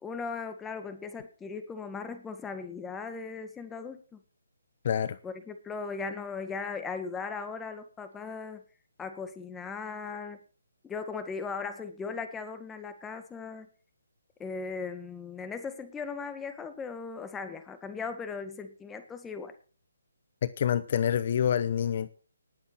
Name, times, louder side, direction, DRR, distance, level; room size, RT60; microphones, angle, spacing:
voice 1, 0.0-4.2 5.2-8.6 9.0-10.4 10.8-13.7 14.4-19.6, left 5 dB, 10° left, 9 dB, 1.8 m, -38 dB
voice 2, 4.8-5.2 20.4-22.1, left 9 dB, 45° left, 17 dB, 0.8 m, -27 dB
19.0 x 8.2 x 6.1 m, 0.39 s
figure-of-eight pair, 150°, 0 cm